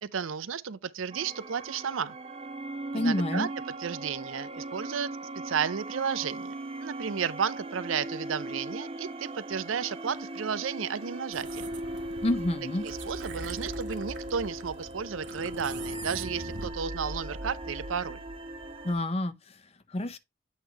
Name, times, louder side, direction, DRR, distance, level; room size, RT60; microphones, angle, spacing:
voice 1, 0.0-2.1 2.9-3.5 3.8-5.1 5.4-11.7 12.8-18.2, right 7 dB, 80° right, 0.5 m, -33 dB
sound 1, 1.1-18.9, right 1 dB, 30° right, 0.8 m, -38 dB
voice 2, 2.9-3.5 12.2-12.8 18.8-19.3 19.9-20.2, left 1 dB, 30° left, 0.6 m, -28 dB
sound 2, 11.3-16.7, right 4 dB, 60° right, 1.0 m, -44 dB
8.1 x 3.1 x 4.6 m
head